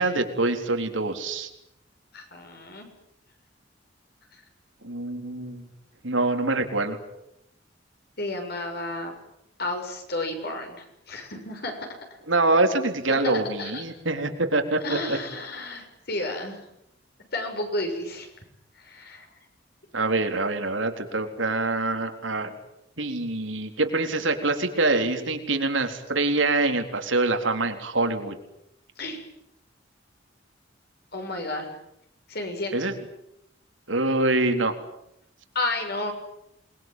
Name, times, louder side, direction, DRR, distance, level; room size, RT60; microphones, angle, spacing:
voice 1, 0.0-1.5 4.8-5.7 6.0-7.0 12.3-15.2 19.9-22.5 23.0-28.4 32.7-32.9 33.9-34.7, right 2 dB, 85° right, 5 dB, 3.9 m, -25 dB
voice 2, 2.1-2.9 8.2-9.1 9.6-12.0 13.1-13.8 14.8-16.6 17.3-18.3 18.8-19.3 29.0-29.2 31.1-31.7 32.3-32.9 35.5-36.1, left 2 dB, 55° left, 4 dB, 6.8 m, -32 dB
27.5 x 21.5 x 9.3 m, 0.81 s
head